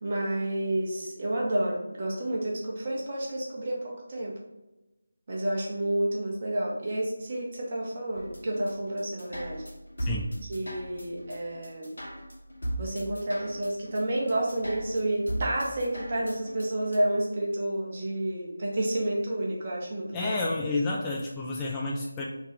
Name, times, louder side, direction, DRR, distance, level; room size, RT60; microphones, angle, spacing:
voice 1, 0.0-4.4 5.3-9.6 10.5-11.9 12.8-20.3, right 1 dB, 40° right, -3 dB, 0.9 m, -30 dB
sound 1, 8.2-17.0, right 1 dB, 85° left, 1.5 m, -37 dB
voice 2, 10.0-10.3 20.1-22.3, left 2 dB, 15° left, -4 dB, 0.3 m, -30 dB
3.5 x 2.3 x 4.3 m, 1.0 s
figure-of-eight pair, 165°, 0 cm